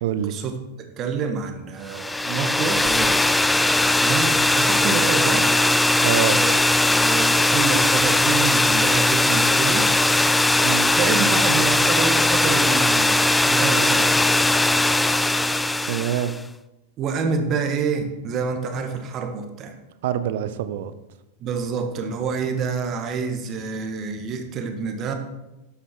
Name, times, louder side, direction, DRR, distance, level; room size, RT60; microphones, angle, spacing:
voice 1, 0.0-0.3 6.0-6.4 10.6-10.9 15.9-16.3 20.0-20.9, right 10 dB, 55° right, 13 dB, 0.8 m, -25 dB
voice 2, 0.8-5.5 6.3-6.5 6.9-9.9 10.9-14.3 17.0-19.8 21.4-25.1, right 5 dB, 30° right, 6 dB, 1.7 m, -28 dB
sound 1, 1.9-16.4, left 2 dB, 5° left, 0.5 m, -19 dB
12.5 x 10.0 x 4.6 m, 1.0 s
figure-of-eight pair, 90°, 0 cm